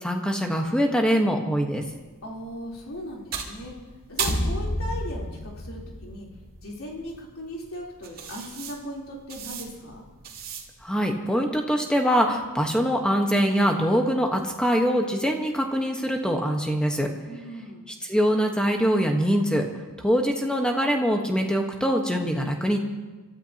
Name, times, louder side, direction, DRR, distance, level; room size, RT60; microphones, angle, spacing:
voice 1, 0.0-1.8 10.8-17.1 18.0-19.6 20.0-22.8, equal, 5° left, 2 dB, 1.2 m, -23 dB
sound 1, 1.8-11.0, right 6 dB, 45° right, 2.0 m, -39 dB
voice 2, 2.2-3.7 4.1-6.3 6.6-10.1 17.3-17.9, equal, 70° left, -3 dB, 3.6 m, -38 dB
sound 2, 4.2-6.8, left 1 dB, 45° left, 1.4 m, -30 dB
29.5 x 13.5 x 2.9 m, 1.2 s
head